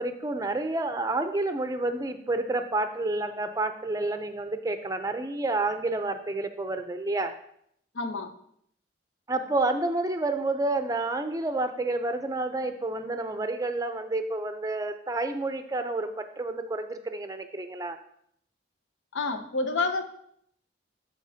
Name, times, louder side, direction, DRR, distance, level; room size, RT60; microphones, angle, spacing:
voice 1, 0.0-7.4 9.3-18.0, right 2 dB, 20° right, 8 dB, 0.4 m, -29 dB
voice 2, 7.9-8.3 19.1-20.0, left 3 dB, 80° left, 8 dB, 0.7 m, -28 dB
12.5 x 4.3 x 2.7 m, 0.69 s
head